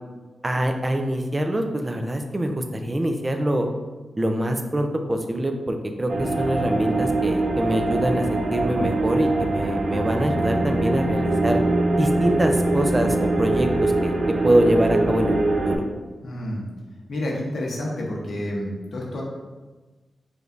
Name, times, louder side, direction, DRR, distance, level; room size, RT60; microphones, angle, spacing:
voice 1, 0.4-3.7 4.2-11.6 12.0-14.1 14.4-15.4 15.7-15.8, right 1 dB, 25° right, 5 dB, 0.5 m, -24 dB
sound 1, 6.1-15.8, right 2 dB, 75° right, 0.7 m, -23 dB
voice 2, 16.2-16.6 17.1-19.2, left 1 dB, 80° left, -3 dB, 1.0 m, -29 dB
4.9 x 3.2 x 2.6 m, 1.2 s
cardioid pair, 65°, 0 cm